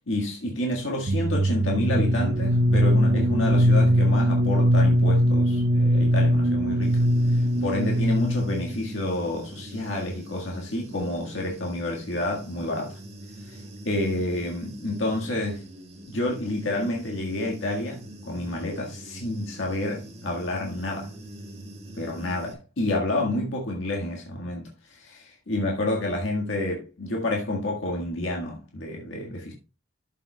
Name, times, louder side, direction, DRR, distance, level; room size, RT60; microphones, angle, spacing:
voice 1, 0.1-7.0 7.3-13.0 13.4-15.6 16.1-21.1 21.9-29.5, left 1 dB, 80° left, 1.7 m, -29 dB
sound 1, 1.1-8.7, equal, 75° right, 0.7 m, -21 dB
Human voice / Buzz, 6.8-22.5, right 1 dB, 30° right, 1.9 m, -43 dB
12.0 x 7.4 x 2.3 m
head